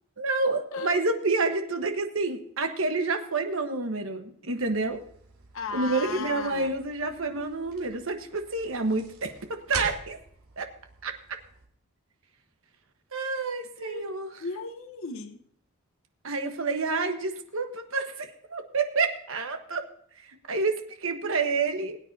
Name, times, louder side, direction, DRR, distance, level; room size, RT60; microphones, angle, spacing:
voice 1, 0.2-5.0 5.7-10.2 10.6-10.7 11.0-11.2 13.1-14.3 16.2-19.9 20.3-22.0, right 3 dB, 70° right, 6 dB, 1.2 m, -28 dB
voice 2, 0.7-1.1 5.5-6.7 13.8-15.4, left 3 dB, 70° left, 7 dB, 1.1 m, -36 dB
sound 1, 4.6-11.7, right 5 dB, 85° right, 2.9 m, -44 dB
21.5 x 9.7 x 2.7 m, 0.65 s
head